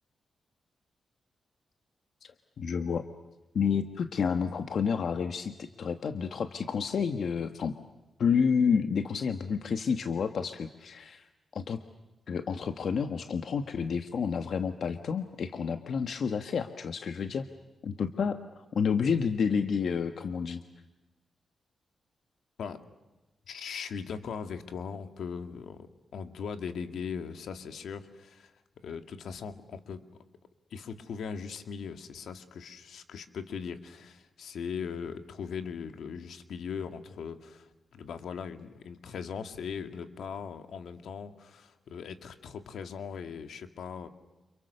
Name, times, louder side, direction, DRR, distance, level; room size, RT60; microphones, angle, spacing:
voice 1, 2.2-3.0 3.5-7.8 8.2-11.3 11.5-11.8 12.3-17.4 17.8-20.6, left 6 dB, 60° left, 8 dB, 1.3 m, -30 dB
voice 2, 23.5-28.5 28.8-30.0 30.7-44.1, left 6 dB, 85° left, 8 dB, 2.1 m, -39 dB
30.0 x 28.5 x 6.8 m, 1.1 s
wide cardioid pair, 145°, 0 cm